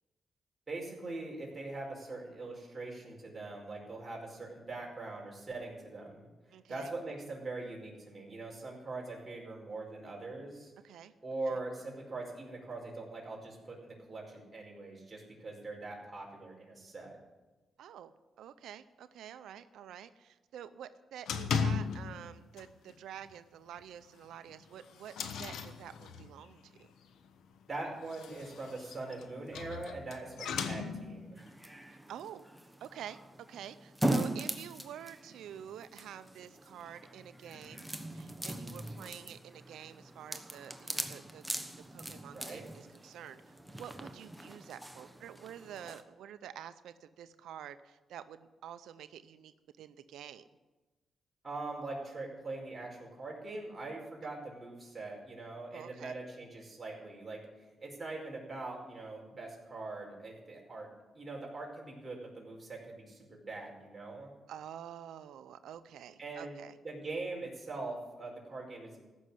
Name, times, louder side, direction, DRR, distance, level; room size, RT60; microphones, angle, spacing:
voice 1, 0.7-10.7 11.2-17.2 27.7-31.4 42.2-42.6 51.4-60.9 61.1-64.3 66.2-66.5 66.8-69.0, right 2 dB, 25° right, -2 dB, 5.0 m, -42 dB
voice 2, 6.5-6.9 10.8-11.1 11.5-11.6 17.8-26.9 30.3-30.5 31.9-32.5 32.8-33.2 33.5-41.4 41.8-50.4 55.7-56.2 64.5-66.7, right 9 dB, 90° right, 12 dB, 0.6 m, -48 dB
sound 1, 21.3-22.3 22.6-22.9 23.3-23.4 23.8-23.9 24.5-26.5 27.9-31.3, left 5 dB, 85° left, 1.1 m, -37 dB
sound 2, 31.4-46.0, right 1 dB, 5° right, 1.1 m, -40 dB
15.0 x 6.4 x 9.8 m, 1.2 s
cardioid pair, 95°, 0 cm